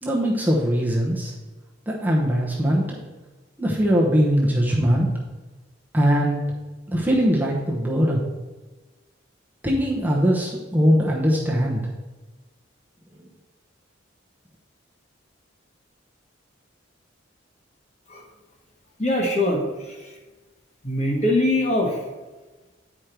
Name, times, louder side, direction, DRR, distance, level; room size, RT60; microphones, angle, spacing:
voice 1, 0.0-1.3 1.9-3.0 3.6-5.1 5.9-6.4 6.9-8.2 9.6-11.8, equal, 10° right, -4 dB, 0.9 m, -21 dB
voice 2, 19.0-20.1 20.8-22.0, left 1 dB, 35° left, -1 dB, 1.5 m, -22 dB
9.5 x 5.0 x 4.5 m, 1.2 s
head